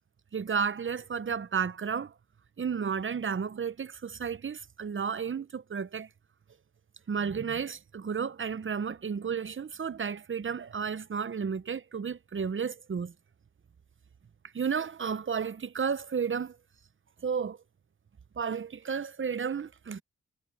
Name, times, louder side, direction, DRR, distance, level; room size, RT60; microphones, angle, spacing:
voice 1, 0.3-2.1 2.6-6.1 7.1-13.1 14.5-16.6 17.2-17.6 18.4-20.0, right 6 dB, 40° right, 0.8 m, -32 dB
cardioid pair, 50°, 31 cm